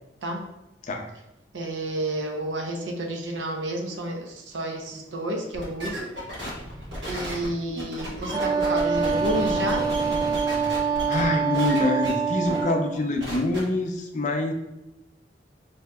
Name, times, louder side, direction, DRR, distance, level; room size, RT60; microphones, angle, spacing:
voice 1, 1.5-6.1 6.6-6.7 7.1-9.9, right 1 dB, 90° right, 2 dB, 0.6 m, -30 dB
sound 1, 5.5-11.3 11.5-12.1 12.4-12.6 12.9-13.6, equal, 75° right, 1.4 m, -34 dB
Wind instrument woodwind instrument, 8.3-13.0, right 5 dB, 20° right, 0.3 m, -25 dB
voice 2, 11.1-14.5, left 2 dB, 45° left, 3 dB, 0.5 m, -25 dB
4.7 x 2.7 x 2.2 m, 0.92 s
head